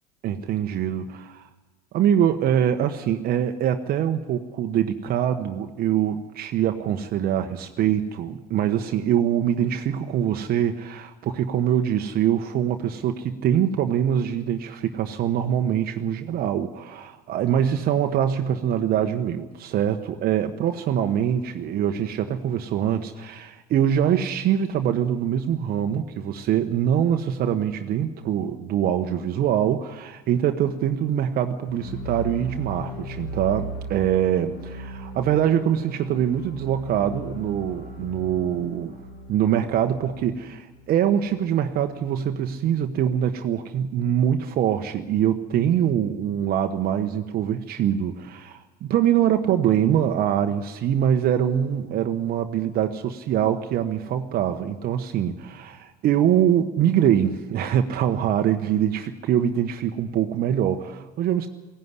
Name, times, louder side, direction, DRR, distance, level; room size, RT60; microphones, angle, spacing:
voice 1, 0.2-1.5 1.9-38.9 39.3-61.5, right 9 dB, 50° right, 6 dB, 1.2 m, -24 dB
sound 1, 31.6-41.7, equal, 70° left, 7.6 m, -37 dB
17.5 x 16.5 x 9.7 m, 1.2 s
supercardioid pair, 90°, 19 cm